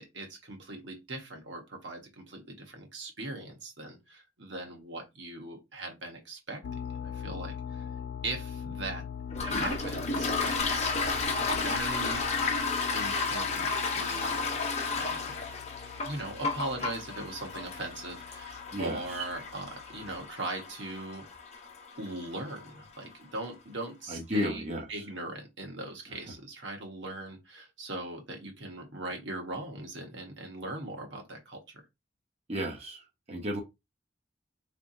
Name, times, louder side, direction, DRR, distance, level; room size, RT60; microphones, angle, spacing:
voice 1, 0.0-6.6 6.9-7.9 8.2-9.0 9.4-10.9 11.4-12.3 12.9-14.4 14.9-15.4 16.0-21.2 22.0-31.8, right 2 dB, 70° right, 1.3 m, -40 dB
sound 1, 6.6-20.2, left 7 dB, 75° left, 0.3 m, -42 dB
Toilet flush, 9.3-22.7, left 4 dB, 35° left, 0.8 m, -33 dB
voice 2, 18.7-19.3 24.1-25.0 26.1-26.2 32.5-33.6, equal, 35° right, 1.0 m, -34 dB
4.1 x 3.3 x 2.7 m
head